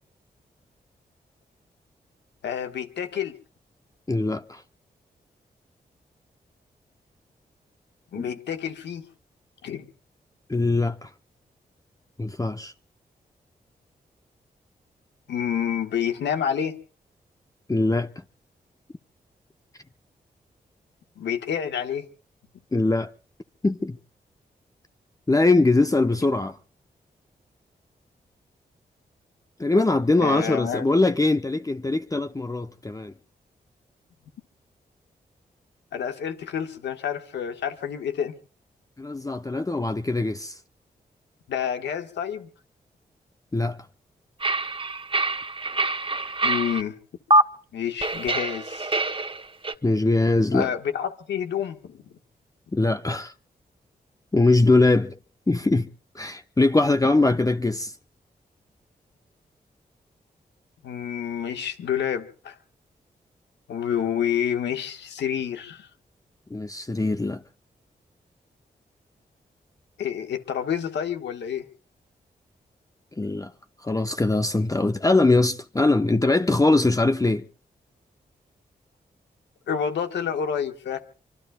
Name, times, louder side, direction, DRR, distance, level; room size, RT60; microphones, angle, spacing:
voice 1, 2.4-3.3 8.1-9.0 9.6-9.9 15.3-16.8 21.2-22.1 30.2-30.8 35.9-38.4 41.5-42.5 46.4-47.0 47.7-49.0 50.5-52.0 60.8-62.6 63.7-65.9 70.0-71.7 79.7-81.0, left 8 dB, 85° left, 1.4 m, -28 dB
voice 2, 4.1-4.6 8.1-8.3 10.5-11.1 12.2-12.7 17.7-18.1 22.7-23.1 23.6-24.0 25.3-26.6 29.6-33.1 39.0-40.6 43.5-43.8 49.8-50.7 52.7-53.3 54.3-55.2 55.5-55.9 56.1-57.9 66.5-67.4 73.2-73.5 73.8-77.4, left 2 dB, 20° left, 0.8 m, -22 dB
sound 1, 44.4-46.8 47.3-47.4 48.0-49.7, right 2 dB, 30° right, 1.3 m, -24 dB
25.0 x 25.0 x 2.3 m
supercardioid pair, 40°, 18 cm